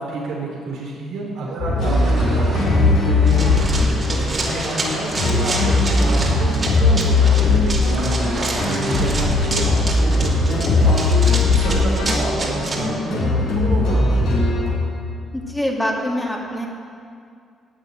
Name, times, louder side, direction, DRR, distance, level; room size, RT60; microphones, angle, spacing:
voice 1, 0.0-3.7 4.1-14.4, right 2 dB, 80° right, -3 dB, 4.2 m, -29 dB
sound 1, 1.6-14.7, left 3 dB, 80° left, 3.5 m, -19 dB
sound 2, 1.8-11.0, right 3 dB, 55° right, 2.4 m, -35 dB
Run, 3.3-12.8, right 2 dB, 35° right, 2.9 m, -29 dB
voice 2, 15.3-16.7, equal, 10° left, -1 dB, 2.3 m, -24 dB
12.5 x 8.1 x 9.2 m, 2.3 s
cardioid pair, 90°, 0 cm